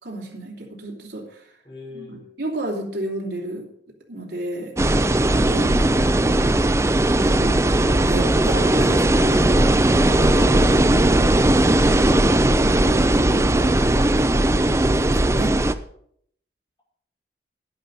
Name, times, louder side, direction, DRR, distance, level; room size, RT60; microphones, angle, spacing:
voice 1, 0.0-1.5 1.9-3.7 4.1-4.8 5.3-5.8 7.2-14.3 14.9-15.6, right 1 dB, 70° right, -1 dB, 3.0 m, -33 dB
voice 2, 1.6-2.3 5.6-6.1, left 2 dB, 25° left, -5 dB, 5.6 m, -41 dB
sound 1, 4.8-15.7, right 1 dB, 15° right, 0.5 m, -18 dB
11.0 x 10.5 x 5.3 m, 0.66 s
head